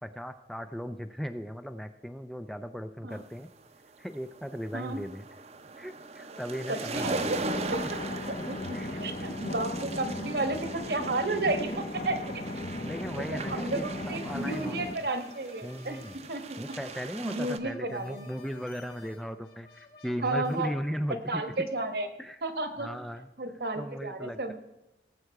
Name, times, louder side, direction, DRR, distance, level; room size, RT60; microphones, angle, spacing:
voice 1, 0.0-3.5 4.0-5.3 5.8-7.3 8.7-8.9 9.2-9.3 12.8-15.1 15.6-16.2 16.6-21.4 22.2-22.4 22.8-23.3 23.8-24.5, equal, ahead, 9 dB, 0.4 m, -37 dB
sound 1, 3.3-17.6, right 3 dB, 40° right, 0.7 m, -41 dB
voice 2, 6.7-7.4 7.7-7.8 8.3-12.4 13.1-16.0 16.3-16.6 17.2-18.3 20.2-20.7 21.1-22.1 22.4-22.9 23.4-24.5, right 2 dB, 60° right, 8 dB, 1.2 m, -32 dB
sound 2, 6.9-14.9, left 1 dB, 40° left, 0.8 m, -36 dB
sound 3, 14.3-20.7, left 4 dB, 60° left, 2.0 m, -55 dB
17.5 x 7.7 x 4.7 m, 0.97 s
head